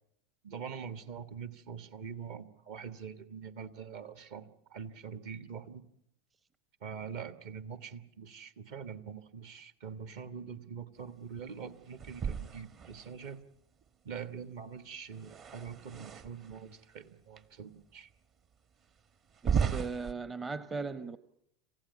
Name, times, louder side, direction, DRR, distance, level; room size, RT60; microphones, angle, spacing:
voice 1, 0.4-5.8 6.8-13.4 14.0-18.1, right 6 dB, 55° right, 12 dB, 1.5 m, -44 dB
sound 1, 12.0-13.4 15.1-16.6 17.4-17.5 18.1-18.2 19.3-20.1, right 7 dB, 40° right, 1.2 m, -35 dB
voice 2, 19.4-21.2, right 4 dB, 20° right, 15 dB, 0.8 m, -38 dB
27.5 x 15.5 x 8.3 m, 0.78 s
figure-of-eight pair, 85°, 0 cm